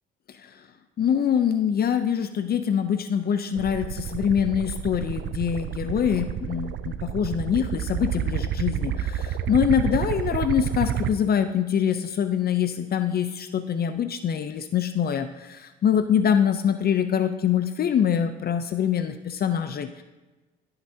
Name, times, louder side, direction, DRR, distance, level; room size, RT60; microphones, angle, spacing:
voice 1, 1.0-20.0, left 8 dB, 50° left, 8 dB, 0.6 m, -24 dB
sound 1, 3.6-11.1, right 9 dB, 70° right, 0.4 m, -29 dB
15.5 x 5.9 x 2.7 m, 1.2 s
cardioid pair, 90°, 20 cm